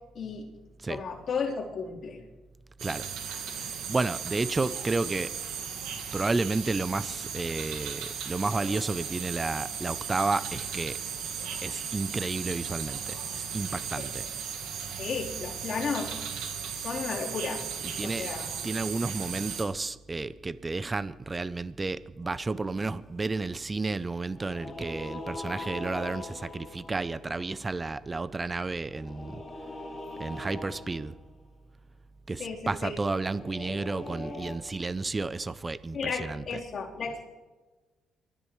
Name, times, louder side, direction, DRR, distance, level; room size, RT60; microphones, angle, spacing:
voice 1, 0.1-0.5 0.9-2.2 14.0-14.1 15.0-16.1 16.7-17.6 18.0-18.5 32.4-32.9 35.9-37.2, left 5 dB, 55° left, -4 dB, 3.8 m, -33 dB
sound 1, 2.8-19.6, right 7 dB, 90° right, 1.9 m, -36 dB
voice 2, 3.9-5.3 6.1-11.0 11.6-14.2 18.0-18.3 18.6-29.4 30.2-31.1 32.3-36.4, right 3 dB, 25° right, 16 dB, 0.5 m, -31 dB
sound 2, 22.2-23.1 24.3-27.8 28.8-31.3 33.2-34.5, left 2 dB, 20° left, 4.6 m, -42 dB
24.0 x 14.0 x 3.2 m, 1.2 s
cardioid pair, 90°, 0 cm